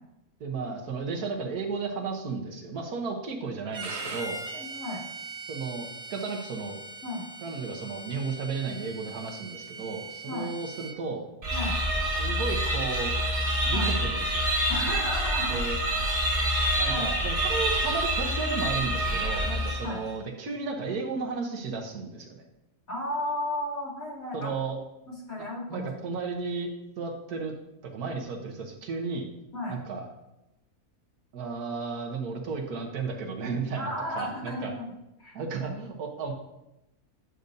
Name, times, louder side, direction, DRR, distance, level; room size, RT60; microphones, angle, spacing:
voice 1, 0.4-4.4 5.5-6.8 7.4-11.3 12.1-13.1 13.6-14.4 15.5-15.8 16.8-22.5 24.3-24.8 25.7-26.7 27.0-27.5 27.8-29.3 29.7-30.1 31.3-34.7 35.3-36.3, right 4 dB, 80° right, 2 dB, 1.5 m, -34 dB
Bowed string instrument, 3.7-11.0, right 3 dB, 50° right, 0.4 m, -41 dB
voice 2, 4.5-5.0 7.0-7.3 10.3-10.5 11.5-11.8 13.7-13.9 14.7-15.6 16.5-17.0 19.8-20.0 22.9-24.5 25.1-25.9 29.5-29.8 33.8-34.9 35.2-35.4, left 1 dB, 60° left, -5 dB, 3.0 m, -34 dB
sound 1, 11.4-20.1, equal, 30° right, 1.3 m, -27 dB
9.5 x 6.7 x 2.6 m, 0.91 s
omnidirectional pair, 1.6 m